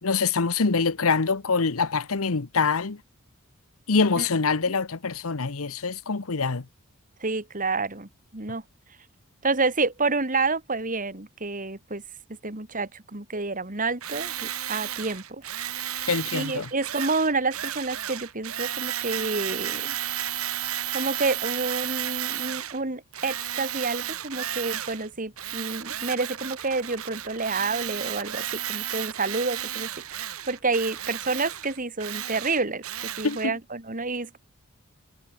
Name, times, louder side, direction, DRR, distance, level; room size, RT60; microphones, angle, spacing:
voice 1, 0.0-3.0 3.9-6.6 16.1-16.7 33.2-33.5, left 4 dB, 70° left, 1.0 m, -25 dB
voice 2, 7.2-8.6 9.4-12.0 12.4-15.4 15.9-19.9 20.9-34.4, right 3 dB, 35° right, 2.7 m, -29 dB
Tools, 14.0-22.8 23.1-25.1 25.4-33.5, right 11 dB, 70° right, 2.3 m, -33 dB
head